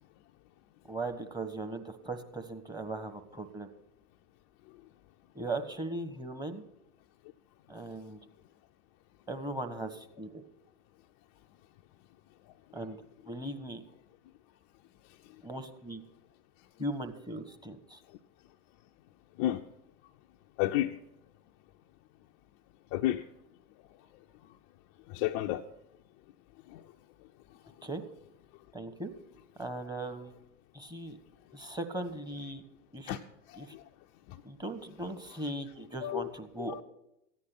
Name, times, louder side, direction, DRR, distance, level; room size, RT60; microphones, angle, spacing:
voice 1, 0.9-3.7 5.3-6.6 7.7-8.2 9.3-10.4 12.7-13.0 13.3-13.8 15.4-16.0 16.8-18.0 27.8-28.0 28.7-29.1 29.6-30.3 30.7-31.2 31.5-32.6 32.9-33.2 33.6-33.8 34.4-36.8, right 2 dB, 10° right, 6 dB, 1.3 m, -38 dB
voice 2, 20.6-20.9 22.9-23.2 25.1-25.6 26.7-26.8 33.1-33.2 33.7-33.8 34.3-34.4 36.0-36.3 36.6-36.8, left 14 dB, 35° left, 4 dB, 0.6 m, -30 dB
14.5 x 9.9 x 6.1 m, 0.83 s
hypercardioid pair, 95°, 48 cm